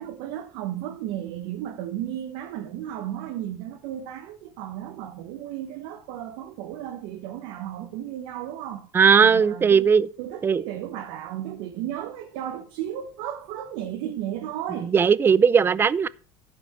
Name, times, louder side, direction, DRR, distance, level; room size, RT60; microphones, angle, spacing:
voice 1, 0.0-9.9 10.2-14.9, right 11 dB, 75° right, 1.0 m, -34 dB
voice 2, 8.9-10.1 10.4-10.6 14.9-16.1, right 6 dB, 25° right, 0.4 m, -18 dB
12.0 x 5.1 x 4.6 m
supercardioid pair, 100°, 10 cm